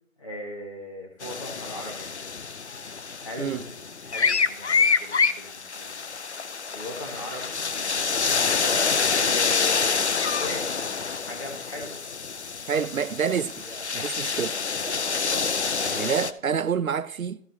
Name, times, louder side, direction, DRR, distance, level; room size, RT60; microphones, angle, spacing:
voice 1, 0.2-2.5 3.2-6.1 6.7-12.0 12.7-12.8 15.2-15.5, left 1 dB, 25° left, 2.1 m, -39 dB
sound 1, 1.2-16.3, left 5 dB, 55° left, 0.6 m, -27 dB
Male speech man speaking, 7.6-8.0 9.1-9.6 10.7-11.2 12.1-12.6 13.5-14.0 14.7-15.2 15.9-16.0, right 2 dB, 10° right, 1.7 m, -47 dB
voice 2, 12.7-13.6 13.9-14.6 15.8-17.4, right 7 dB, 80° right, 0.7 m, -27 dB
14.0 x 4.9 x 4.5 m
figure-of-eight pair, 175°, 41 cm